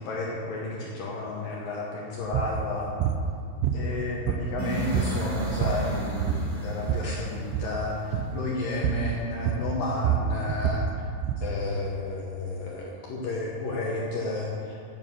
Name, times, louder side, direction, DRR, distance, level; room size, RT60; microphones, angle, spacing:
voice 1, 0.0-2.9 3.7-10.8 11.4-14.8, left 2 dB, 75° left, -3 dB, 2.0 m, -32 dB
sound 1, 2.3-2.5 3.0-3.2 3.6-4.6 4.9-5.2 5.5-5.9 6.2-7.1 7.5-7.8 8.1-8.4 8.8-9.1 9.5-11.5, right 9 dB, 85° right, 2.6 m, -27 dB
sound 2, 4.6-8.5, right 3 dB, 25° right, 2.4 m, -34 dB
11.5 x 9.2 x 7.5 m, 2.4 s
omnidirectional pair, 5.8 m